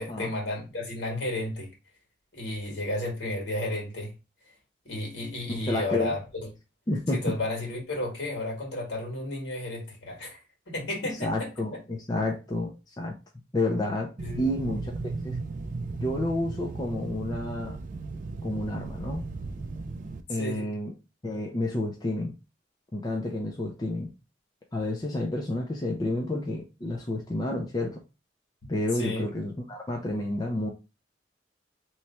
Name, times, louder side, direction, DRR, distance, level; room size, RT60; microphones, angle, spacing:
voice 1, 0.0-1.7 2.3-4.1 4.9-6.2 7.1-10.4 10.7-11.8 14.2-14.5 20.3-20.7 28.9-29.3, left 1 dB, 65° left, 1.7 m, -33 dB
voice 2, 5.5-6.2 6.9-7.2 11.2-13.1 13.5-14.9 15.2-15.4 16.0-17.8 18.4-19.2 20.3-20.9 21.2-22.3 22.9-24.1 24.7-28.0 28.7-30.7, left 1 dB, 20° left, 0.5 m, -30 dB
sound 1, 14.2-20.2, right 3 dB, 45° right, 0.3 m, -36 dB
3.1 x 2.2 x 4.1 m
head